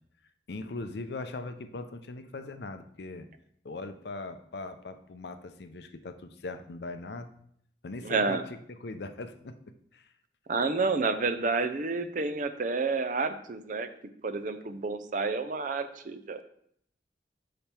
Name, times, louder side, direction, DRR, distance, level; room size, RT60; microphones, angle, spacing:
voice 1, 0.5-3.3 3.6-7.3 7.8-9.6 9.9-10.1, left 3 dB, 65° left, 9 dB, 0.5 m, -40 dB
voice 2, 8.0-8.4 10.5-13.9 14.2-16.4, right 4 dB, 45° right, 10 dB, 0.5 m, -29 dB
5.7 x 5.2 x 4.4 m, 0.69 s
head